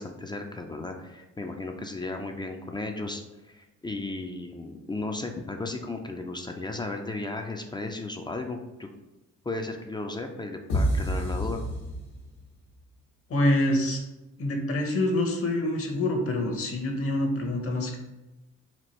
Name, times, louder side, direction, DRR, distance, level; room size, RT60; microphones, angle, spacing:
voice 1, 0.0-3.2 3.5-8.9 9.4-11.6, left 2 dB, 15° left, 4 dB, 0.3 m, -35 dB
sound 1, 10.7-12.5, equal, 80° left, 1.1 m, -28 dB
voice 2, 13.3-14.0 14.4-18.0, left 1 dB, 50° left, 3 dB, 0.8 m, -26 dB
4.3 x 2.4 x 3.1 m, 1.0 s
cardioid pair, 90°, 30 cm